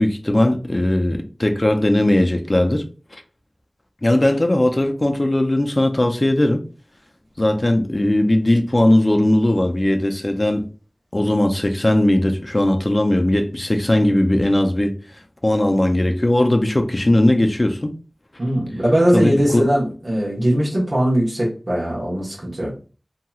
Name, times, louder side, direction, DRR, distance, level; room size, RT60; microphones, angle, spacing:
voice 1, 0.0-2.8 3.1-3.2 4.0-6.6 7.4-10.7 11.1-14.9 15.4-17.9 19.1-19.7, left 1 dB, 40° left, 0.5 m, -18 dB
voice 2, 18.4-22.7, equal, 55° right, 1.1 m, -20 dB
2.9 x 2.8 x 2.3 m
wide cardioid pair, 45°, 0 cm